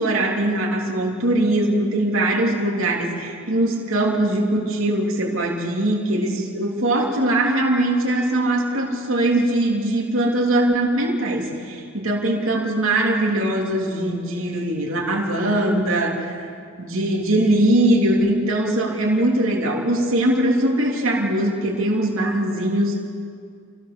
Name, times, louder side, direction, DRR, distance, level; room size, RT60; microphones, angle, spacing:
voice 1, 0.0-16.5 16.8-23.0, right 1 dB, 70° right, -2 dB, 3.1 m, -21 dB
26.0 x 16.5 x 7.0 m, 2.2 s
head